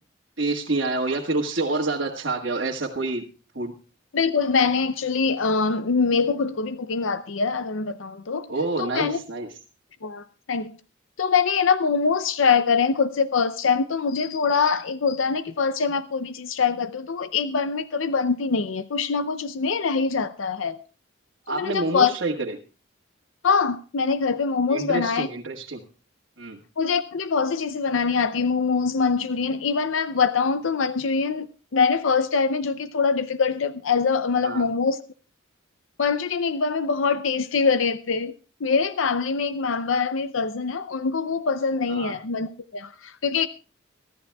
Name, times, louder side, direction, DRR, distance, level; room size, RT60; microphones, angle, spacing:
voice 1, 0.4-3.3 3.5-3.8 8.5-9.5 21.5-22.6 24.7-25.8 26.4-26.6 34.4-34.7 41.9-42.2, right 2 dB, 70° right, 1.7 m, -27 dB
voice 2, 4.1-8.5 8.8-9.2 10.0-10.7 11.2-20.8 21.5-22.1 23.4-25.3 26.8-31.5 31.7-35.0 36.0-38.3 38.6-43.5, left 5 dB, 80° left, 0.6 m, -23 dB
24.5 x 13.5 x 2.3 m
head